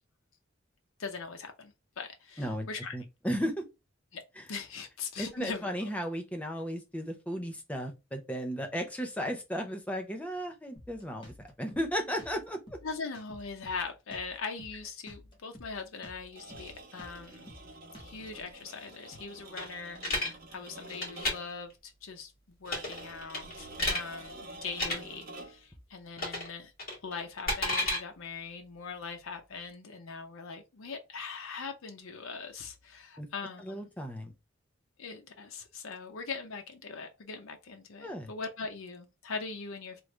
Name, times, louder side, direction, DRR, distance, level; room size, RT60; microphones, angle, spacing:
voice 1, 1.0-3.0 4.1-4.2 4.5-5.7 12.8-17.5 18.0-22.3 22.6-26.7 27.0-33.9 35.0-40.0, left 4 dB, 85° left, 0.6 m, -41 dB
voice 2, 2.9-3.6 4.4-4.5 5.2-12.8 33.2-33.3 33.6-34.3 38.0-38.3, equal, 5° left, 0.5 m, -35 dB
Drum kit, 10.8-18.4, left 1 dB, 25° left, 0.9 m, -52 dB
sound 1, 16.2-21.6 22.7-25.7, right 2 dB, 45° right, 0.9 m, -48 dB
sound 2, 19.6-20.3 20.9-21.3 22.6-23.0 23.3-24.0 24.7-25.0 26.2-26.5 26.8-28.0, left 1 dB, 50° left, 1.6 m, -31 dB
3.1 x 2.5 x 3.2 m
head